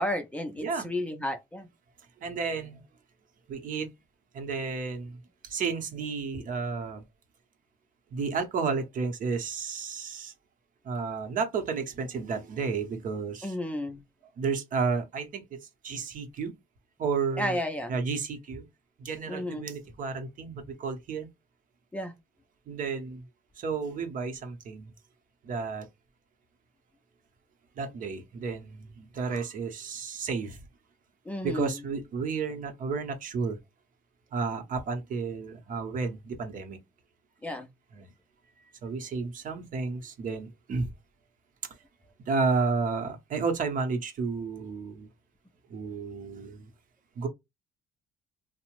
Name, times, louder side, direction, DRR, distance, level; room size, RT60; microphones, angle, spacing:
voice 1, 0.0-1.7 13.4-14.0 17.4-18.0 19.3-19.7 21.9-22.1 31.3-31.8 37.4-37.7, left 1 dB, 10° left, 0.5 m, -32 dB
voice 2, 0.6-0.9 2.2-2.8 3.5-3.9 4.3-7.0 8.1-10.3 10.8-13.5 14.4-16.5 17.0-17.6 17.9-18.7 19.0-21.3 22.7-23.2 23.6-24.9 25.4-25.9 27.8-30.6 31.4-33.6 34.3-36.8 37.9-38.1 38.8-40.9 42.3-45.1 45.7-46.7 47.2-47.3, right 4 dB, 55° right, 0.8 m, -32 dB
2.8 x 2.0 x 2.9 m
cardioid pair, 110°, 17 cm